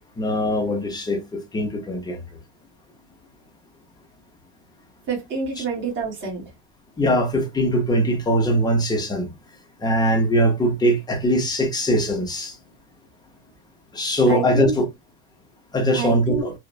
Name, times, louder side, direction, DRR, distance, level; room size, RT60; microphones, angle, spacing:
voice 1, 0.2-2.2 5.6-5.7 7.0-9.3 9.8-12.6 13.9-14.9 15.7-16.5, equal, 10° left, 0.4 m, -21 dB
voice 2, 5.1-6.4 14.3-14.7 15.9-16.5, right 4 dB, 30° right, 1.0 m, -27 dB
2.9 x 2.0 x 2.5 m
cardioid pair, 145°, 41 cm